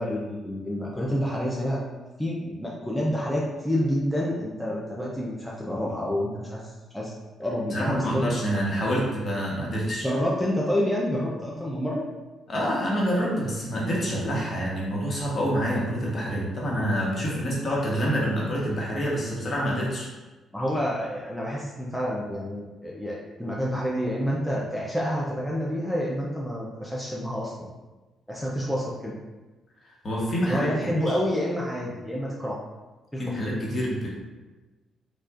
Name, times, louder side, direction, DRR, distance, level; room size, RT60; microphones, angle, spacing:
voice 1, 0.0-1.8 2.2-7.1 7.4-8.3 10.0-12.0 20.5-27.7 28.3-29.1 30.5-32.6 33.1-33.2, equal, ahead, -5 dB, 0.5 m, -28 dB
voice 2, 7.7-10.1 12.5-20.1 29.8-30.7 30.9-31.2 33.2-34.1, equal, 40° left, -4 dB, 1.1 m, -27 dB
4.6 x 2.4 x 2.5 m, 1.2 s
cardioid pair, 90°, 0 cm